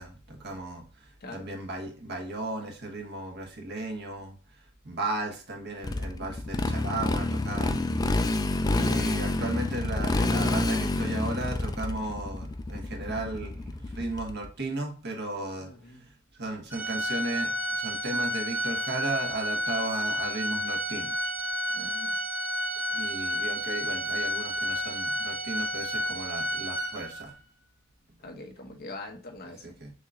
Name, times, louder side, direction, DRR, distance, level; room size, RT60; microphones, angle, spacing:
voice 1, 0.0-7.9 8.7-21.2 22.9-27.3 29.4-29.9, right 2 dB, 55° right, 1.2 m, -35 dB
Motorcycle, 5.8-14.5, left 2 dB, 20° left, 0.3 m, -28 dB
voice 2, 15.6-16.0 21.7-22.1 28.2-29.7, left 2 dB, 50° left, 1.1 m, -43 dB
Organ, 16.7-27.3, equal, 10° right, 0.9 m, -31 dB
6.4 x 3.1 x 2.4 m
head